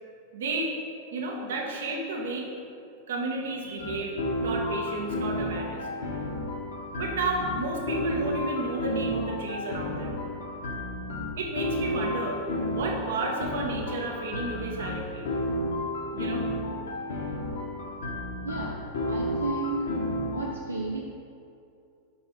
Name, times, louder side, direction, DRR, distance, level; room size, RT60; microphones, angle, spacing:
voice 1, 0.3-0.7 1.1-2.5 3.1-4.1 4.4-5.9 6.9-10.1 11.4-15.3 16.1-16.4, right 2 dB, 60° right, 0 dB, 1.0 m, -32 dB
sound 1, 3.8-20.5, left 1 dB, 60° left, 1.1 m, -32 dB
voice 2, 18.4-19.8 20.3-21.0, right 3 dB, 80° right, -1 dB, 0.4 m, -33 dB
5.6 x 4.6 x 4.6 m, 2.5 s
figure-of-eight pair, 90°, 0 cm